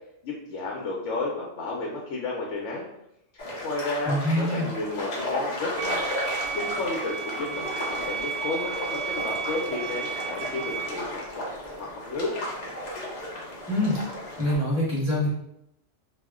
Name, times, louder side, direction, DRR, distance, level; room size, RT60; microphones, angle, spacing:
voice 1, 0.2-2.9 3.6-6.1 6.5-11.4 11.8-12.3, left 2 dB, 80° left, -2 dB, 0.9 m, -32 dB
sound 1, 3.4-14.5, left 1 dB, 45° left, 0.6 m, -34 dB
voice 2, 4.0-4.7 13.7-14.0 14.4-15.3, left 1 dB, 10° right, -7 dB, 0.9 m, -25 dB
sound 2, 5.8-10.9, right 7 dB, 55° right, 0.3 m, -33 dB
2.4 x 2.1 x 3.5 m, 0.78 s
omnidirectional pair, 1.2 m